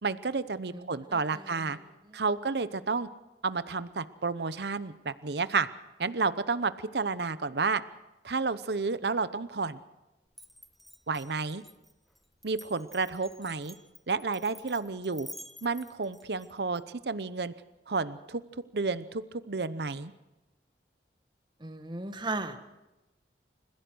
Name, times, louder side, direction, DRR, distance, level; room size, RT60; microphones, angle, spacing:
voice 1, 0.0-1.8 2.1-3.1 3.4-5.7 6.0-7.8 8.2-9.8 11.1-11.6 12.4-13.7 14.1-15.3 15.6-17.5 17.9-18.4 18.7-20.1, right 4 dB, 65° right, 14 dB, 0.8 m, -31 dB
voice 2, 0.7-2.2 21.6-22.6, right 2 dB, 25° right, 8 dB, 1.5 m, -38 dB
Glass, 10.3-16.8, equal, ahead, 0.9 m, -50 dB
29.5 x 16.0 x 6.2 m, 0.99 s
head